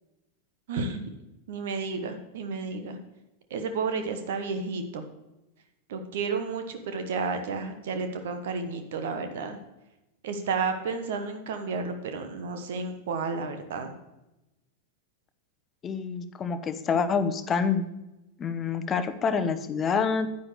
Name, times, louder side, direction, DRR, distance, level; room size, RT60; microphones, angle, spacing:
voice 1, 0.7-1.1 1.5-3.0 3.5-5.1 5.9-9.6 10.2-13.9, right 4 dB, 55° right, 7 dB, 1.1 m, -32 dB
voice 2, 15.8-17.9 18.4-20.4, left 5 dB, 25° left, 10 dB, 0.8 m, -27 dB
10.0 x 9.5 x 3.2 m, 0.96 s
figure-of-eight pair, 90°, 0 cm